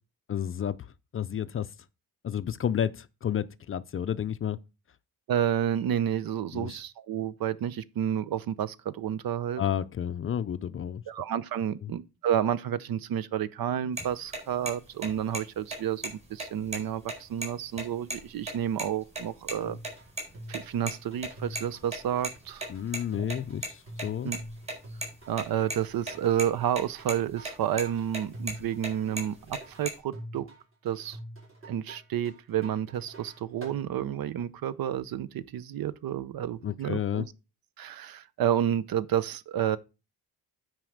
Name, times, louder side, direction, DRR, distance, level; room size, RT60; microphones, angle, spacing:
voice 1, 0.3-0.7 1.1-1.7 2.2-4.6 6.5-6.8 9.6-11.0 22.7-24.3 36.6-37.2, left 9 dB, 35° left, 0.4 m, -31 dB
voice 2, 5.3-9.6 11.1-19.8 20.5-22.7 24.2-24.4 25.3-30.5 30.8-31.2 31.7-37.2 37.8-39.8, right 10 dB, 65° right, 0.7 m, -30 dB
sound 1, 14.0-14.1 14.3-14.4 14.7-14.8 15.0-15.4 15.7-15.8 16.0-16.1 16.4-17.5 17.7-17.8 18.1-18.2 18.5-18.8 19.1-19.6 19.8-20.9 21.2-23.7 24.0-25.8 26.1-26.2 26.4-26.8 27.1-27.5 27.8-28.9 29.2-29.9, right 1 dB, 15° right, 4.3 m, -35 dB
sound 2, 19.6-33.8, right 1 dB, 35° right, 4.8 m, -46 dB
9.2 x 4.8 x 6.4 m
wide cardioid pair, 160°, 37 cm